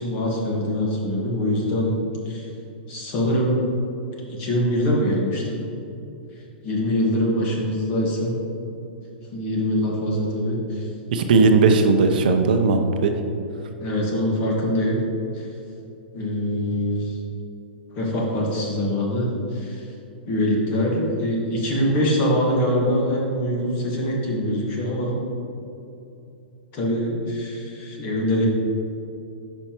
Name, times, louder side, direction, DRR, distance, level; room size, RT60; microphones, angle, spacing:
voice 1, 0.0-2.4 2.9-3.6 4.3-5.6 6.6-8.4 9.3-10.9 13.8-15.0 15.3-15.4 16.1-17.2 18.0-19.8 20.3-25.2 26.7-28.5, equal, 30° left, -2 dB, 1.5 m, -23 dB
voice 2, 11.1-13.1, right 4 dB, 60° right, 5 dB, 0.6 m, -17 dB
9.8 x 5.5 x 3.0 m, 2.8 s
hypercardioid pair, 160°, 5 cm